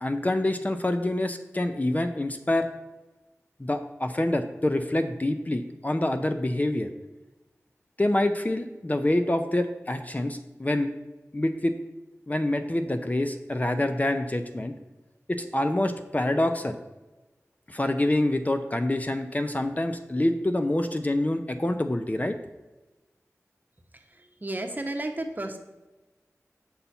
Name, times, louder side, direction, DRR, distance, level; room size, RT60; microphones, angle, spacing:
voice 1, 0.0-2.7 3.6-6.9 8.0-10.9 11.3-11.7 12.3-14.7 15.3-16.8 17.7-22.4, left 1 dB, 30° left, 7 dB, 0.6 m, -26 dB
voice 2, 24.1-25.6, right 1 dB, 35° right, 4 dB, 0.9 m, -33 dB
8.2 x 5.5 x 4.3 m, 1.1 s
wide cardioid pair, 60°, 5 cm